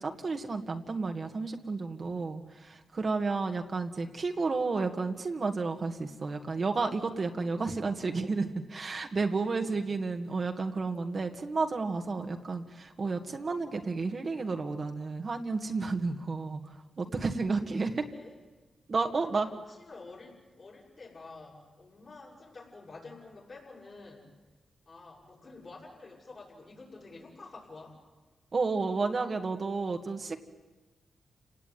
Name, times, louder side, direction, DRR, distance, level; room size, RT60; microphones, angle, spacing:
voice 1, 0.0-18.0 18.9-19.5 28.5-30.4, right 4 dB, 50° right, 4 dB, 1.9 m, -32 dB
voice 2, 9.4-9.8 17.9-18.4 19.2-24.3 24.9-28.0, left 3 dB, 55° left, -6 dB, 7.1 m, -50 dB
29.0 x 18.0 x 9.4 m, 1.2 s
cardioid pair, 55°, 0 cm